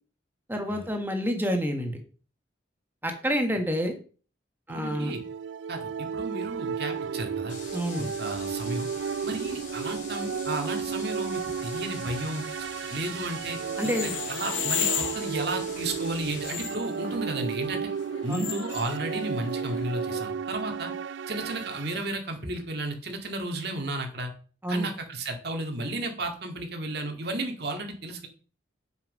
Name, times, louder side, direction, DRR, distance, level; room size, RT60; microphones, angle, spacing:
voice 1, 0.5-2.0 3.0-3.9 4.7-5.1 7.7-8.1 13.8-14.1 18.3-18.4 24.6-24.9, equal, 10° right, 4 dB, 1.4 m, -28 dB
voice 2, 4.7-5.2 5.7-7.6 8.0-8.9 9.2-13.6 13.8-17.9 18.2-20.9 21.3-24.3 24.7-28.3, right 2 dB, 55° right, 4 dB, 2.0 m, -33 dB
sound 1, 4.8-22.1, right 6 dB, 75° right, 0.4 m, -33 dB
sound 2, 7.5-16.5, left 3 dB, 40° left, 3.2 m, -44 dB
sound 3, 13.7-20.2, left 8 dB, 90° left, 1.3 m, -35 dB
7.9 x 7.2 x 5.3 m, 0.39 s
head